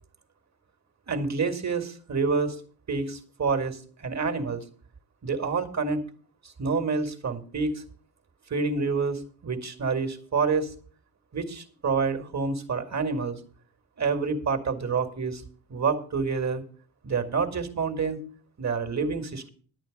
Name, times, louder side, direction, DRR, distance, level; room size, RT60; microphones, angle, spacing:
voice 1, 1.1-2.6 2.9-4.6 5.2-6.1 6.6-7.8 8.5-10.7 11.3-13.4 14.0-15.4 15.7-16.6 17.0-18.2 18.6-19.5, right 4 dB, 35° right, 7 dB, 2.1 m, -28 dB
10.5 x 9.0 x 5.2 m, 0.44 s
hypercardioid pair, 50°, 45 cm